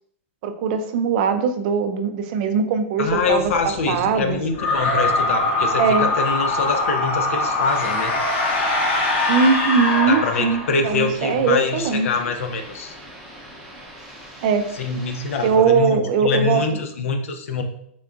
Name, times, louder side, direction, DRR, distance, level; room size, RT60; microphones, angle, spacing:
voice 1, 0.4-3.5 3.9-4.4 5.8-6.1 9.3-12.1 14.4-14.7 15.4-16.6, right 5 dB, 40° right, 7 dB, 0.4 m, -20 dB
voice 2, 3.0-8.1 10.1-12.9 14.8-17.6, left 4 dB, 75° left, 6 dB, 0.6 m, -24 dB
sound 1, 3.0-15.5, equal, ahead, 0.7 m, -41 dB
sound 2, 4.5-11.0, left 2 dB, 40° left, 0.7 m, -22 dB
3.6 x 3.4 x 2.5 m, 0.70 s
supercardioid pair, 160°, 7 cm